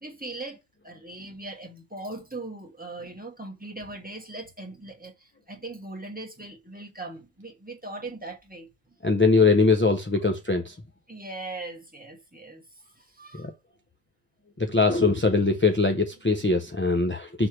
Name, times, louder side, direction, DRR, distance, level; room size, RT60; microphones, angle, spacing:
voice 1, 0.0-8.7 11.1-13.5, right 2 dB, 10° right, 1.2 m, -40 dB
voice 2, 9.0-10.8 13.3-13.5 14.6-17.5, left 3 dB, 20° left, 0.3 m, -22 dB
6.1 x 3.2 x 5.9 m
omnidirectional pair, 1.0 m